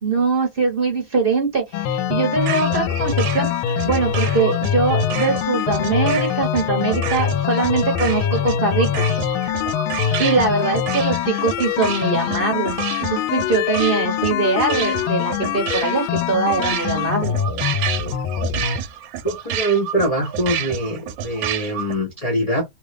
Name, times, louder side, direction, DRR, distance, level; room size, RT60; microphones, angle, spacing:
voice 1, 0.0-3.5 3.8-9.1 10.2-12.8 13.1-17.4, right 4 dB, 35° right, 1.0 m, -22 dB
sound 1, 1.7-18.8, left 9 dB, 90° left, 1.4 m, -23 dB
sound 2, 2.4-21.9, right 10 dB, 80° right, 1.3 m, -30 dB
voice 2, 19.2-22.6, right 1 dB, 40° left, 0.5 m, -23 dB
3.3 x 2.3 x 3.3 m
omnidirectional pair, 2.2 m